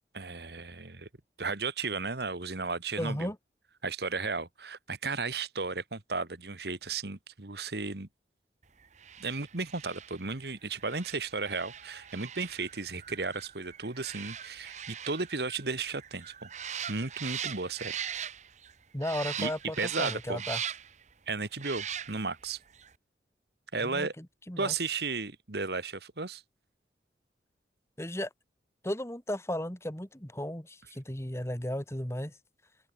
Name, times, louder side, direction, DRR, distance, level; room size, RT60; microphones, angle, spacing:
voice 1, 0.1-1.1 1.4-3.3 3.8-8.1 9.2-16.5 16.9-18.0 19.4-19.5 19.8-20.4 21.3-22.6 23.7-24.1 24.6-26.4, right 4 dB, 65° right, 1.7 m, -34 dB
voice 2, 3.0-3.4 18.9-20.6 23.8-24.7 28.0-28.3 28.8-32.3, left 1 dB, 15° left, 2.2 m, -35 dB
sound 1, 8.9-18.7 19.0-21.0 21.5-22.4 22.7-22.9, right 9 dB, 40° right, 1.4 m, -41 dB
open air
head